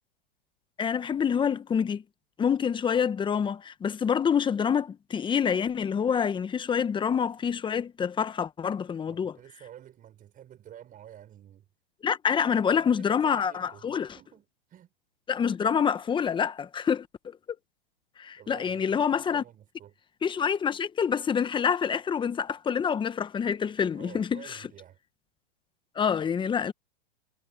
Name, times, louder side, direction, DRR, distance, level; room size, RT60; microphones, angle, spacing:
voice 1, 0.8-2.0 2.4-9.4 12.0-14.2 15.3-17.4 18.2-19.4 20.2-24.6 25.9-26.7, left 7 dB, 15° left, 1.3 m, -27 dB
voice 2, 9.1-11.7 12.7-14.9 18.4-20.0 23.9-25.0, right 11 dB, 25° right, 5.5 m, -50 dB
hypercardioid pair, 120°, 30 cm